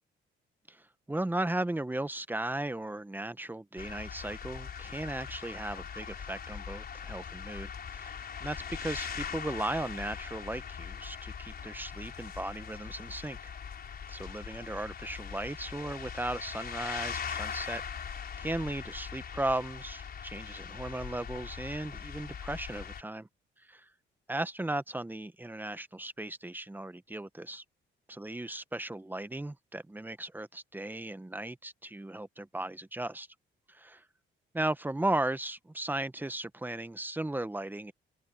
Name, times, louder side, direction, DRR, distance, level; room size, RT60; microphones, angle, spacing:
voice 1, 0.7-13.5 14.1-23.3 23.7-23.9 24.3-27.6 28.1-33.3 33.7-34.0 34.5-37.9, right 1 dB, 10° right, 0.9 m, -36 dB
sound 1, 3.8-23.0, left 7 dB, 50° left, 4.8 m, -41 dB
open air
cardioid pair, 90°, 20 cm